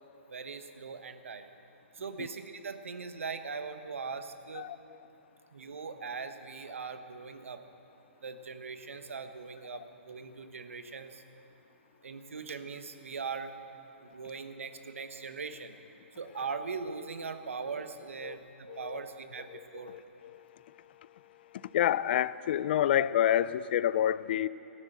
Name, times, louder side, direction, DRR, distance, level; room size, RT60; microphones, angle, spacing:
voice 1, 0.3-1.5 1.9-4.7 5.5-7.6 8.2-11.2 12.0-15.8 16.2-19.9, right 5 dB, 75° right, 1.2 m, -40 dB
voice 2, 18.7-19.0 19.5-20.4 21.7-24.5, left 11 dB, 50° left, 0.4 m, -29 dB
15.0 x 12.5 x 7.9 m
hypercardioid pair, 130°, 7 cm